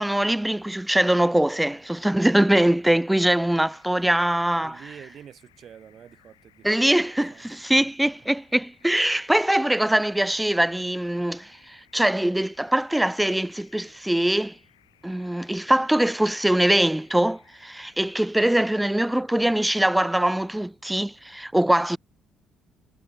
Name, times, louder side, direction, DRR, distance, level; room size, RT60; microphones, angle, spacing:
voice 1, 0.0-4.8 6.6-14.5 15.0-22.0, right 1 dB, 5° right, 0.6 m, -22 dB
sound 1, 3.1-18.1, left 14 dB, 85° left, 7.3 m, -62 dB
voice 2, 4.6-8.1, right 9 dB, 55° right, 1.3 m, -48 dB
hypercardioid pair, 50°, 0 cm